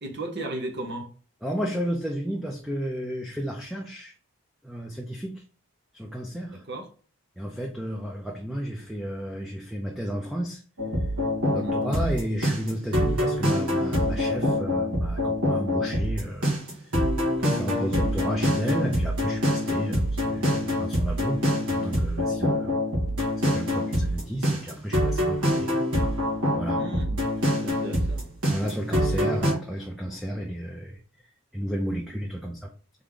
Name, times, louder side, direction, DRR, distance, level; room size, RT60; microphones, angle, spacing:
voice 1, 0.0-1.1 6.5-6.9 11.5-11.8 23.6-23.9 26.7-27.2 27.6-28.2, right 1 dB, 50° right, 0.9 m, -35 dB
voice 2, 1.4-4.1 4.6-5.4 5.9-6.6 7.4-10.6 11.5-16.5 17.4-22.8 23.0-25.7 26.5-26.8 28.5-31.0 31.5-32.7, equal, ahead, 0.4 m, -32 dB
sound 1, 10.8-29.5, equal, 80° right, 1.8 m, -25 dB
3.5 x 3.5 x 3.7 m
head